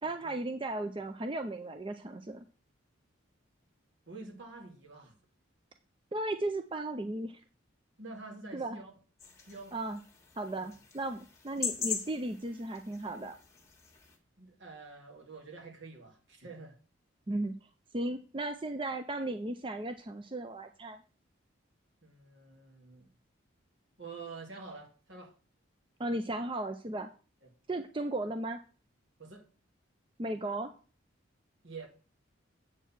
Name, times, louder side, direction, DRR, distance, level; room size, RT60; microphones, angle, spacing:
voice 1, 0.0-2.5 6.1-7.4 8.5-8.8 9.7-10.0 10.4-13.4 17.3-17.5 17.9-21.0 26.0-27.1 27.7-28.6 30.2-30.7, right 2 dB, 25° right, 0.5 m, -35 dB
voice 2, 4.1-5.2 8.0-8.9 9.4-9.7 10.6-10.7 14.4-16.8 22.0-23.1 24.0-25.3 29.2-29.5 31.6-31.9, right 3 dB, 70° right, 2.3 m, -47 dB
sound 1, 9.2-14.2, left 6 dB, 15° left, 1.6 m, -41 dB
8.1 x 4.6 x 7.3 m
head